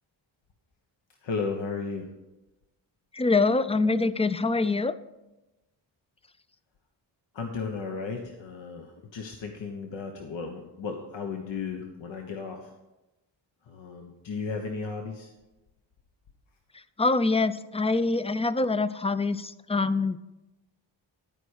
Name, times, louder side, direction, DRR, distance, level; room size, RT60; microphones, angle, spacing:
voice 1, 1.2-2.1 7.3-12.7 13.7-15.3, left 4 dB, 80° left, 2 dB, 1.1 m, -34 dB
voice 2, 3.2-4.9 17.0-19.4 19.7-20.2, left 3 dB, 15° left, 14 dB, 0.4 m, -24 dB
12.5 x 4.8 x 6.5 m, 1.0 s
cardioid pair, 85°, 45 cm